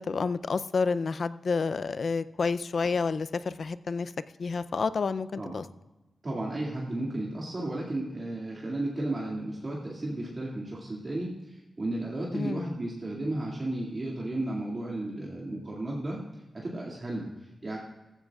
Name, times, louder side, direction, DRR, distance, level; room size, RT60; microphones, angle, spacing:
voice 1, 0.0-4.1 4.4-5.6 12.3-12.6, left 4 dB, 55° left, 14 dB, 0.4 m, -29 dB
voice 2, 6.2-16.2 16.5-17.8, right 1 dB, 35° right, -4 dB, 2.2 m, -34 dB
15.5 x 14.5 x 2.4 m, 1.1 s
wide cardioid pair, 110°, 0 cm